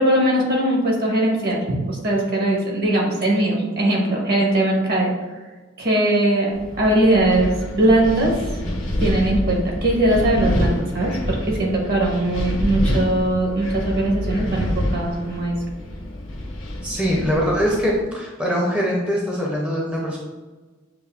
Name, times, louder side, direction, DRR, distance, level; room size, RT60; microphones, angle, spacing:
voice 1, 0.0-5.1 5.8-8.4 9.0-15.5, right 1 dB, 55° right, -2 dB, 1.1 m, -20 dB
Wind, 6.5-18.0, left 1 dB, 80° left, 1.0 m, -27 dB
voice 2, 16.8-20.2, equal, 5° right, -4 dB, 0.6 m, -22 dB
6.6 x 2.6 x 2.4 m, 1.3 s
head